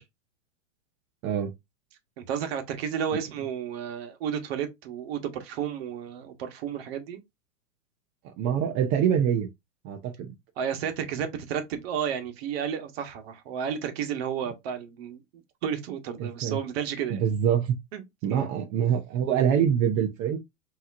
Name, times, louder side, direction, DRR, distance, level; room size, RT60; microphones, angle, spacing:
voice 1, 2.2-7.2 10.6-15.2 15.6-17.2 17.9-18.0 18.3-18.5, right 8 dB, 50° right, 1.2 m, -32 dB
voice 2, 8.4-9.5 9.8-10.3 16.2-16.6 17.1-17.8 18.2-20.4, right 8 dB, 25° right, 0.5 m, -25 dB
5.5 x 2.9 x 2.6 m
hypercardioid pair, 140°, 39 cm